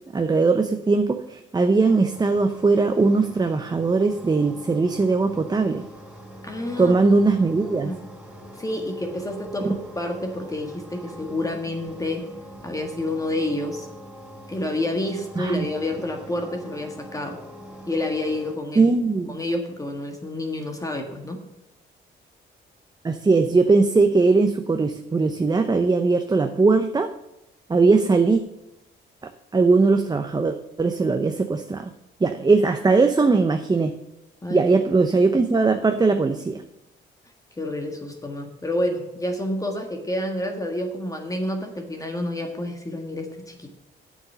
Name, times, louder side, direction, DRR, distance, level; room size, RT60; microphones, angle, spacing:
voice 1, 0.1-5.8 6.8-7.9 9.6-9.7 15.4-15.6 18.8-19.4 23.0-27.1 27.7-28.4 29.5-31.9 32.2-33.9 34.5-36.6, right 3 dB, 20° right, 7 dB, 0.7 m, -20 dB
sound 1, 1.8-18.6, equal, 5° right, 4.7 m, -43 dB
voice 2, 6.4-7.0 7.6-8.1 8.6-12.3 12.6-13.9 14.5-17.4 17.9-18.9 19.3-21.4 34.4-34.6 35.0-35.1 37.6-43.7, left 1 dB, 15° left, 3 dB, 1.6 m, -29 dB
8.2 x 7.3 x 6.8 m, 0.90 s
cardioid pair, 90°, 20 cm